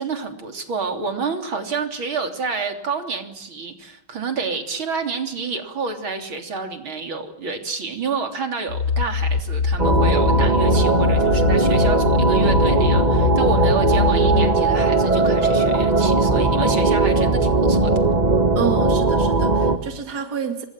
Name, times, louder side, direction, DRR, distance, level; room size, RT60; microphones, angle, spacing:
voice 1, 0.0-17.9, right 4 dB, 85° right, 5 dB, 4.2 m, -28 dB
sound 1, 8.7-14.5, left 5 dB, 55° left, 1.7 m, -23 dB
sound 2, 9.8-19.8, right 3 dB, 20° right, 1.8 m, -18 dB
voice 2, 18.5-20.6, right 6 dB, 50° right, 6 dB, 2.8 m, -28 dB
29.0 x 25.5 x 7.4 m, 0.82 s
omnidirectional pair, 2.2 m